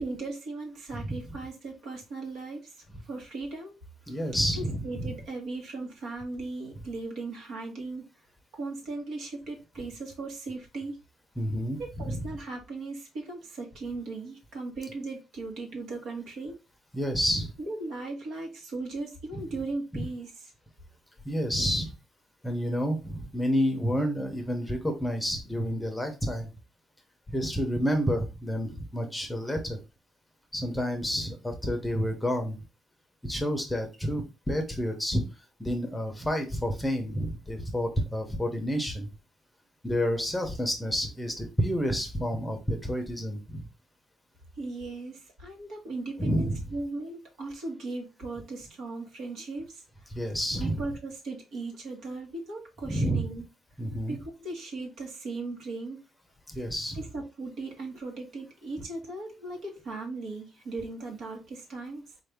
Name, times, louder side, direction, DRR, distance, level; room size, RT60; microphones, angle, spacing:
voice 1, 0.0-3.7 4.1-4.2 4.5-8.0 8.5-11.0 11.8-16.6 17.6-20.5 44.6-49.8 50.6-53.4 54.1-56.0 56.9-62.1, right 3 dB, 70° right, 1.4 m, -37 dB
voice 2, 4.1-5.1 11.4-12.3 16.9-17.5 19.3-19.4 19.9-20.0 21.2-21.9 22.4-26.5 27.3-29.8 30.5-32.6 33.2-35.2 35.6-39.1 39.8-43.6 46.2-46.6 50.1-50.8 52.9-53.3 53.8-54.2 56.5-57.0, equal, 5° left, 0.8 m, -29 dB
4.2 x 2.7 x 3.4 m
cardioid pair, 140°, 0 cm